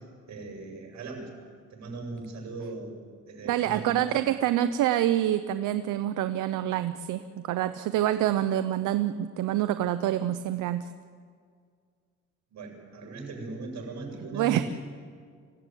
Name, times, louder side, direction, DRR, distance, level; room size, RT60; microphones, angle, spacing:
voice 1, 0.3-1.3 1.7-3.0 3.2-4.3 12.5-14.7, right 3 dB, 65° right, 0 dB, 7.3 m, -39 dB
voice 2, 3.4-10.9 14.3-14.6, right 12 dB, 85° right, 11 dB, 0.8 m, -26 dB
25.5 x 16.5 x 9.2 m, 2.1 s
cardioid pair, 90°, 30 cm